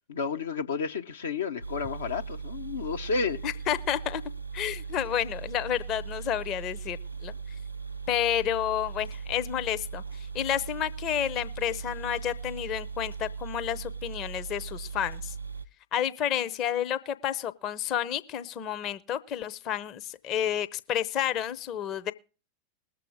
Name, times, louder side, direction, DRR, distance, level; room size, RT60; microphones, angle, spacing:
voice 1, 0.0-3.4, left 5 dB, 65° left, 0.8 m, -31 dB
sound 1, 1.6-15.7, right 5 dB, 90° right, 0.6 m, -39 dB
voice 2, 3.4-4.2 4.5-7.3 8.1-15.3 15.9-22.1, left 10 dB, 35° left, 0.8 m, -30 dB
21.0 x 7.7 x 3.5 m
figure-of-eight pair, 90°, 0 cm